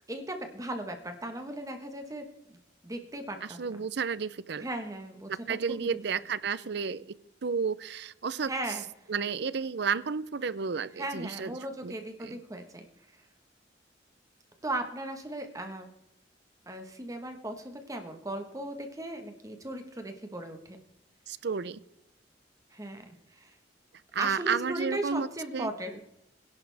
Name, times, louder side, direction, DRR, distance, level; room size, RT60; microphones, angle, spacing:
voice 1, 0.1-2.6 2.8-3.7 4.6-5.9 8.5-8.8 11.0-12.8 14.6-15.9 16.7-20.8 22.7-23.5 24.2-26.0, right 1 dB, 20° right, 6 dB, 1.3 m, -37 dB
voice 2, 3.4-4.7 5.3-7.1 7.4-8.5 9.1-11.5 11.8-11.9 12.2-12.4 21.3-21.8 24.1-25.3 25.5-25.7, right 6 dB, 65° right, 18 dB, 0.6 m, -32 dB
21.5 x 11.0 x 3.4 m, 0.82 s
head